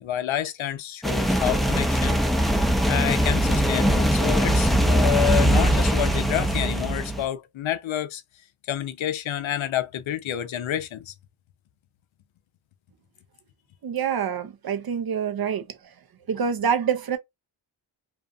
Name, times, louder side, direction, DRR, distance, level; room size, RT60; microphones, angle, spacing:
voice 1, 0.0-2.2 2.9-8.2 8.7-11.1, left 11 dB, 70° left, 0.5 m, -28 dB
sound 1, 1.0-7.2, equal, ahead, 0.4 m, -21 dB
voice 2, 13.8-15.7 16.3-17.2, right 7 dB, 50° right, 0.5 m, -26 dB
2.5 x 2.5 x 2.2 m
cardioid pair, 75°, 50 cm